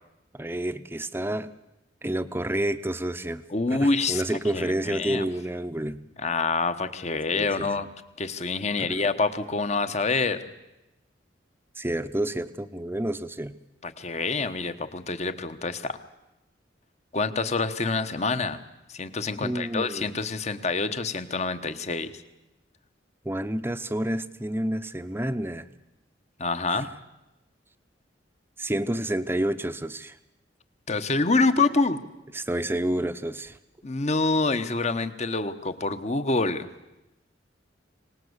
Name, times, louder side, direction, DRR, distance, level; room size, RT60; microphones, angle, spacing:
voice 1, 0.3-1.5 2.0-3.4 3.7-6.0 7.3-7.7 8.8-9.0 11.8-13.6 19.4-20.1 23.2-25.7 28.6-30.2 32.3-33.6, right 1 dB, 10° right, 11 dB, 0.8 m, -29 dB
voice 2, 3.5-4.2 4.5-5.2 6.2-7.9 8.2-10.4 13.8-16.0 17.1-18.6 18.9-22.1 26.4-26.9 30.9-32.0 33.8-36.7, left 3 dB, 35° left, 11 dB, 1.2 m, -26 dB
25.0 x 18.5 x 8.1 m, 0.96 s
head